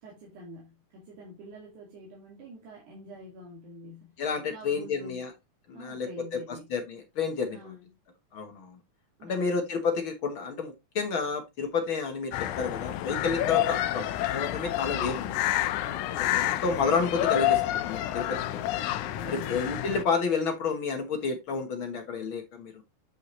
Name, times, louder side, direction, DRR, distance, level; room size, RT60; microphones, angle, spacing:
voice 1, 0.0-4.1 4.5-5.3 5.7-6.7 7.5-7.9 9.2-9.7 15.8-16.3 19.0-19.6, equal, 75° right, 3.6 m, -46 dB
voice 2, 4.2-5.3 5.7-6.4 6.7-7.7 8.3-8.8 9.2-15.4 16.2-18.6 19.3-22.7, left 5 dB, 55° left, 1.5 m, -30 dB
sound 1, 12.3-20.0, left 13 dB, 80° left, 2.1 m, -29 dB
9.2 x 5.5 x 3.0 m
omnidirectional pair, 3.6 m